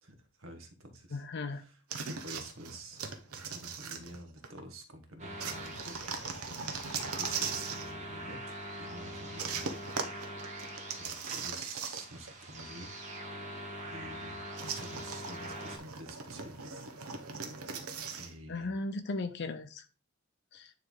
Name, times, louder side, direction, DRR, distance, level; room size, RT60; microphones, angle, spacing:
voice 1, 0.0-1.2 1.5-6.2 7.1-9.7 11.0-13.0 13.8-17.6 18.2-18.7, right 1 dB, 65° right, 6 dB, 1.4 m, -49 dB
voice 2, 1.1-1.6 18.5-19.9 20.5-20.7, left 2 dB, 50° left, 8 dB, 0.5 m, -36 dB
sound 1, 1.9-4.6 5.4-7.9 9.4-12.3 12.6-12.7 14.6-18.3, right 5 dB, 85° right, 0.9 m, -39 dB
sound 2, 5.2-15.8, right 1 dB, 35° right, 1.5 m, -43 dB
9.6 x 3.3 x 3.8 m, 0.34 s
head